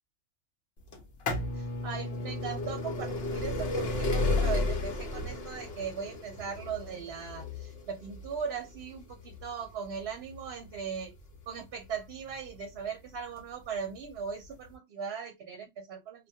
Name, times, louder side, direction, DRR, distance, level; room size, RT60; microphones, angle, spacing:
sound 1, 0.9-12.6 13.4-13.5 14.4-14.5 14.7-14.8, left 2 dB, 60° left, 0.8 m, -33 dB
voice 1, 1.5-11.2 11.5-16.3, right 6 dB, 65° right, 0.8 m, -39 dB
2.1 x 2.1 x 2.7 m
omnidirectional pair, 1.2 m